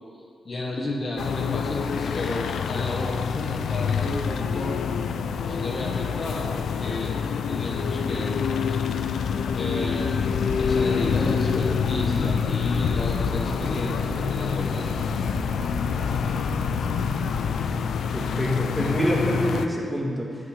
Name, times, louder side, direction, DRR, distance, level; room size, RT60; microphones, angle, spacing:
voice 1, 0.4-4.8 5.4-7.1 7.5-9.2 9.5-10.3 10.6-15.2, left 1 dB, 40° left, -1 dB, 1.4 m, -33 dB
sound 1, 1.2-19.7, left 6 dB, 75° left, 0.5 m, -26 dB
sound 2, 11.0-17.4, right 5 dB, 80° right, 1.0 m, -37 dB
voice 2, 18.1-20.4, equal, ahead, -3 dB, 1.8 m, -26 dB
9.3 x 5.8 x 8.2 m, 2.3 s
cardioid pair, 95°, 0 cm